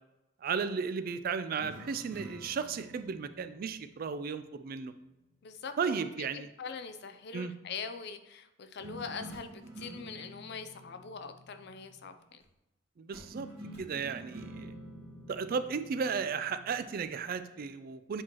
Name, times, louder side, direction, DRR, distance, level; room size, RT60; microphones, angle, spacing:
voice 1, 0.4-4.9 5.8-6.5 7.3-7.5 13.0-13.5 13.8-14.7 15.3-18.2, right 5 dB, 50° right, 12 dB, 0.4 m, -34 dB
sound 1, 1.6-5.0 8.8-12.2 13.1-17.0, right 1 dB, 30° right, 2.1 m, -49 dB
voice 2, 5.4-12.4, left 5 dB, 55° left, 9 dB, 0.5 m, -43 dB
8.0 x 4.5 x 3.0 m, 0.92 s
head